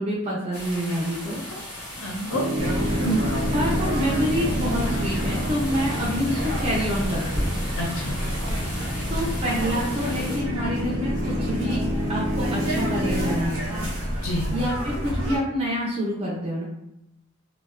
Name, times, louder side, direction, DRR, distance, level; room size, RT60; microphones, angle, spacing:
voice 1, 0.0-1.4 3.5-7.5 9.1-11.8 12.1-13.9 14.5-16.6, equal, 25° right, -5 dB, 0.4 m, -27 dB
sound 1, 0.5-10.4, left 1 dB, 10° left, 0.6 m, -37 dB
voice 2, 2.0-2.7 3.0-3.2 7.8-8.1 14.2-14.5, right 1 dB, 60° left, -1 dB, 0.4 m, -27 dB
Piano, 2.3-13.3, left 1 dB, 85° right, 1.0 m, -30 dB
sound 2, 2.6-15.4, equal, 65° right, 0.7 m, -29 dB
2.5 x 2.1 x 2.4 m, 0.84 s
head